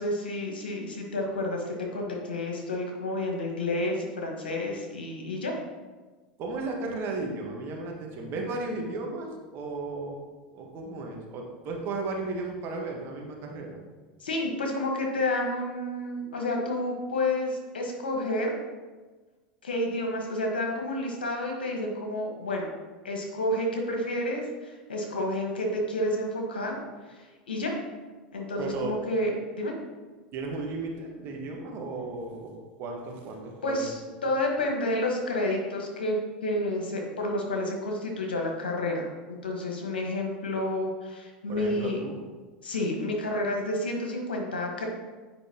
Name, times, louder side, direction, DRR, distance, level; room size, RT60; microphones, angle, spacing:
voice 1, 0.0-5.6 14.2-18.5 19.6-22.7 23.0-26.8 27.1-27.7 28.3-29.7 33.6-42.0 42.6-44.9, left 1 dB, 85° left, 0 dB, 1.4 m, -30 dB
voice 2, 6.4-10.2 10.5-13.8 28.6-28.9 30.3-33.9 41.5-42.2, right 3 dB, 50° right, 1 dB, 1.5 m, -35 dB
8.9 x 5.1 x 2.9 m, 1.3 s
hypercardioid pair, 90°, 5 cm